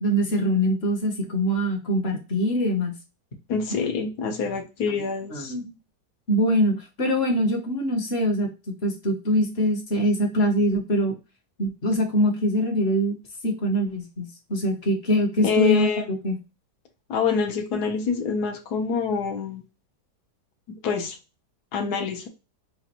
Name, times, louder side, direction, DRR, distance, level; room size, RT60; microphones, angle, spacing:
voice 1, 0.0-3.0 5.3-5.7 6.3-11.1 11.6-13.1 13.4-15.9 16.2-16.4, equal, 45° left, 2 dB, 1.1 m, -23 dB
voice 2, 3.5-5.5 15.4-16.1 17.1-19.6 20.8-21.2 21.7-22.3, left 5 dB, 70° left, 5 dB, 1.4 m, -26 dB
5.1 x 2.5 x 2.9 m, 0.29 s
omnidirectional pair, 1.8 m